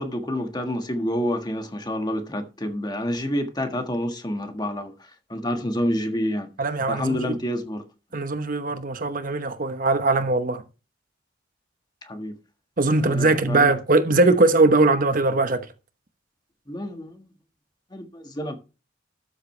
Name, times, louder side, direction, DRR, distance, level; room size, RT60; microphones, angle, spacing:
voice 1, 0.0-4.9 5.3-6.5 6.9-7.8 12.1-12.3 13.0-13.7 16.7-17.3 17.9-18.6, equal, 20° left, 1.5 m, -28 dB
voice 2, 6.6-7.4 8.1-10.6 12.8-15.7, right 2 dB, 45° right, 0.9 m, -20 dB
13.0 x 7.7 x 3.2 m
head